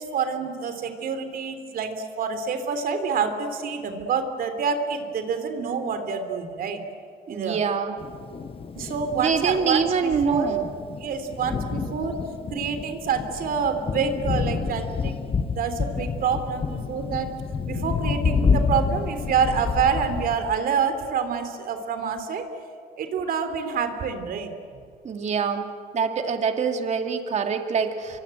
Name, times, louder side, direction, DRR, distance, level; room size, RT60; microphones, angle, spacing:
voice 1, 0.0-6.8 7.3-7.6 8.7-10.6 11.0-12.2 12.5-17.3 17.6-22.4 23.0-24.5, right 6 dB, 60° right, 8 dB, 3.4 m, -27 dB
voice 2, 7.3-7.9 9.2-10.6 25.0-25.6 25.9-28.2, right 6 dB, 40° right, 5 dB, 2.4 m, -25 dB
Thunder, 8.0-20.6, left 5 dB, 35° left, 1.4 m, -29 dB
25.5 x 23.5 x 9.1 m, 2.1 s
cardioid pair, 110°, 17 cm